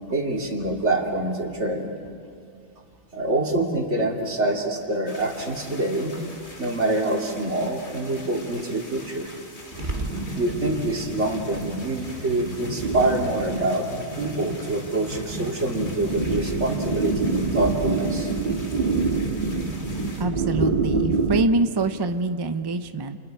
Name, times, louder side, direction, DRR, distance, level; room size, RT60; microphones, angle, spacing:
voice 1, 0.1-1.9 3.1-6.2 6.6-9.3 10.3-13.9 14.2-18.3, right 2 dB, 75° right, 0 dB, 2.9 m, -25 dB
sound 1, 5.1-20.2, left 2 dB, 65° left, 2.9 m, -44 dB
sound 2, 9.7-21.5, right 3 dB, 45° right, 1.8 m, -27 dB
voice 2, 20.2-23.2, right 2 dB, 25° right, 9 dB, 0.7 m, -25 dB
30.0 x 29.5 x 4.6 m, 2.3 s
omnidirectional pair, 1.2 m